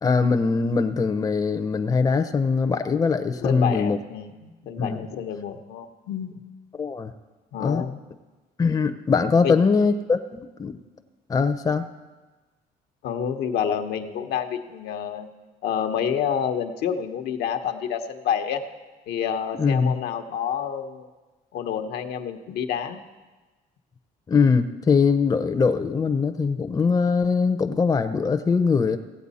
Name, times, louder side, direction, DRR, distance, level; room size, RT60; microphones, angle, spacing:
voice 1, 0.0-4.0 4.8-5.0 6.8-7.1 7.6-7.8 8.6-10.8 11.3-11.9 19.6-19.9 24.3-29.0, left 5 dB, 20° left, 8 dB, 0.6 m, -22 dB
voice 2, 3.4-6.4 7.5-8.0 9.4-9.6 13.0-15.3 15.6-18.6 19.1-21.1 21.5-23.0, left 8 dB, 75° left, 5 dB, 0.9 m, -28 dB
16.5 x 8.1 x 4.2 m, 1.2 s
cardioid pair, 110°, 17 cm